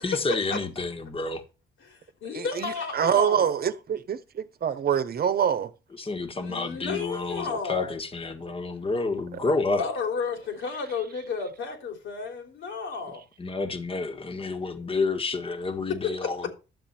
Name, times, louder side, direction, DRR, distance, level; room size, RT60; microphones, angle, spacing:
voice 1, 0.0-1.4 6.0-9.9 13.4-16.5, left 3 dB, 30° left, 1.7 m, -29 dB
voice 2, 1.8-3.5 6.4-7.9 9.8-13.2 14.7-14.8 16.0-16.3, left 5 dB, 75° left, 3.5 m, -32 dB
voice 3, 2.3-5.7, right 8 dB, 50° right, 1.0 m, -25 dB
11.5 x 7.4 x 4.3 m
cardioid pair, 90°, 20 cm